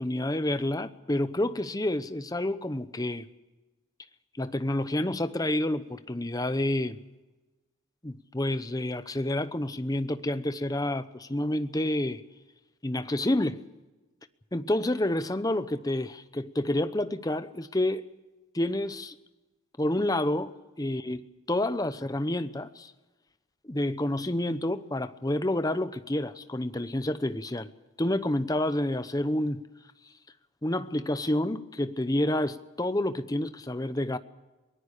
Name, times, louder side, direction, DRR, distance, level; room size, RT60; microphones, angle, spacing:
voice 1, 0.0-3.3 4.4-7.0 8.0-12.2 12.8-13.6 14.5-18.1 18.5-19.1 19.8-21.2 21.5-22.9 23.6-27.7 28.0-29.6 30.6-34.2, left 1 dB, 20° left, 0.9 m, -29 dB
23.0 x 19.5 x 6.7 m
head